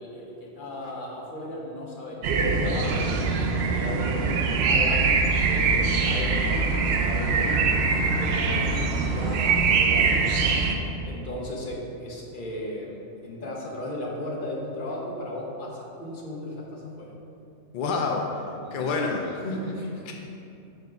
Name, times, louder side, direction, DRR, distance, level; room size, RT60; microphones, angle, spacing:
voice 1, 0.0-10.6 11.0-17.1 18.6-18.8 19.3-20.1, left 1 dB, 40° left, -3 dB, 1.1 m, -36 dB
sound 1, 2.2-10.7, right 4 dB, 65° right, 0.7 m, -23 dB
voice 2, 17.7-18.3 18.7-19.4 20.1-20.2, left 4 dB, 70° left, 1 dB, 0.5 m, -27 dB
5.0 x 4.0 x 5.8 m, 2.7 s
omnidirectional pair, 1.4 m